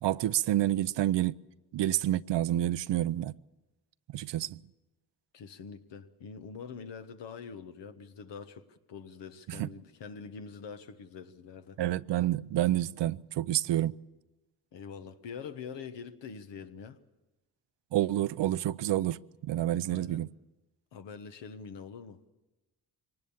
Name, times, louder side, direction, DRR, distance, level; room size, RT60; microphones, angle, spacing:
voice 1, 0.0-1.4 1.7-3.3 4.1-4.6 9.5-9.7 11.8-13.9 17.9-20.3, right 13 dB, 80° right, 0.6 m, -28 dB
voice 2, 5.3-11.8 14.7-17.0 19.9-20.2 20.9-22.3, left 6 dB, 85° left, 1.3 m, -44 dB
24.0 x 19.0 x 7.2 m
cardioid pair, 70°, 42 cm